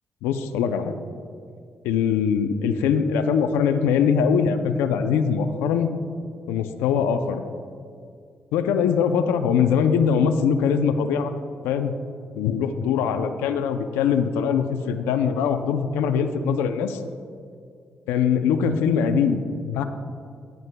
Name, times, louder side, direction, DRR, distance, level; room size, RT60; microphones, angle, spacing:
voice 1, 0.2-0.9 1.8-5.9 6.5-7.4 8.5-11.3 11.6-11.9 12.4-17.0 18.1-19.8, left 7 dB, 90° left, 8 dB, 0.5 m, -22 dB
18.0 x 9.4 x 2.2 m, 2.2 s
supercardioid pair, 50°, 4 cm